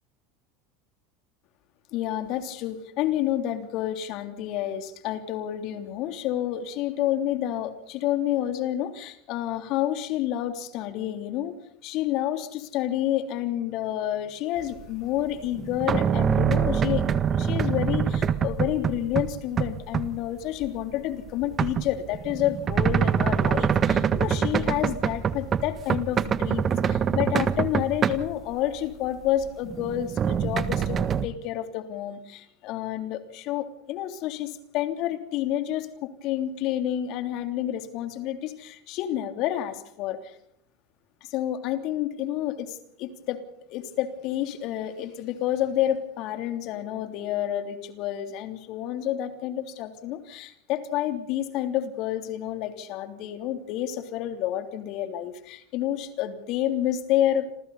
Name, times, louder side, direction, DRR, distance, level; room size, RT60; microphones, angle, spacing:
voice 1, 1.9-11.6 11.8-40.4 41.2-43.4 43.7-57.5, left 12 dB, 55° left, 7 dB, 3.2 m, -29 dB
sound 1, 15.2-19.3 19.6-20.1 20.6-28.5 29.1-31.3, right 7 dB, 35° right, 1.6 m, -25 dB
28.0 x 27.0 x 4.2 m, 0.71 s
hypercardioid pair, 80°, 0 cm